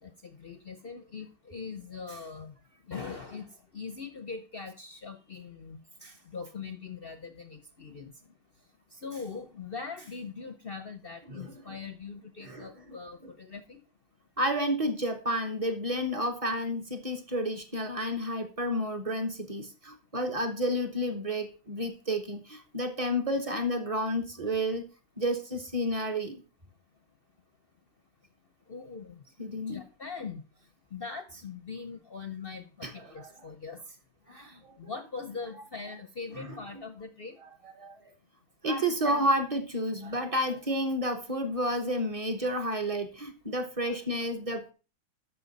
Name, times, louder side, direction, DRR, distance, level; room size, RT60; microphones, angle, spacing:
voice 1, 0.0-2.6 2.9-8.1 8.9-13.8 28.7-29.2 29.7-30.4 30.9-34.0 34.3-37.4, left 5 dB, 50° left, 8 dB, 0.7 m, -41 dB
voice 2, 11.3-11.8 12.4-12.7 13.2-13.3 14.4-24.8 25.2-26.4 29.4-29.8 32.8-33.3 34.3-34.9 36.4-36.5 37.8-37.9 38.6-44.7, equal, 25° right, 6 dB, 0.8 m, -31 dB
13.0 x 5.7 x 4.1 m, 0.34 s
omnidirectional pair, 1.9 m